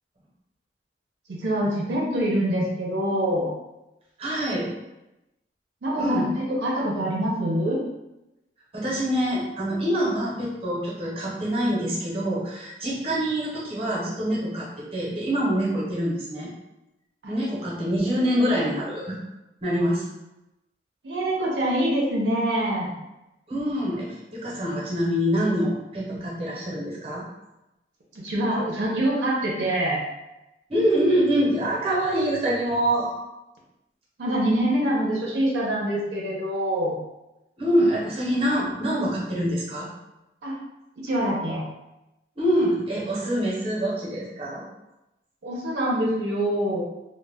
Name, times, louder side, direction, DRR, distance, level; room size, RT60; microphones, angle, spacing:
voice 1, 1.3-3.5 5.8-7.8 17.2-17.3 21.0-22.9 28.1-30.0 34.2-36.9 40.4-40.6 41.0-41.6 45.4-46.8, right 1 dB, 80° right, -3 dB, 0.6 m, -25 dB
voice 2, 4.2-4.7 6.0-6.3 8.7-16.5 17.3-19.2 19.6-20.0 23.5-27.2 30.7-33.1 37.6-39.9 42.4-44.6, equal, 35° right, -4 dB, 0.8 m, -25 dB
2.1 x 2.1 x 3.3 m, 0.95 s
head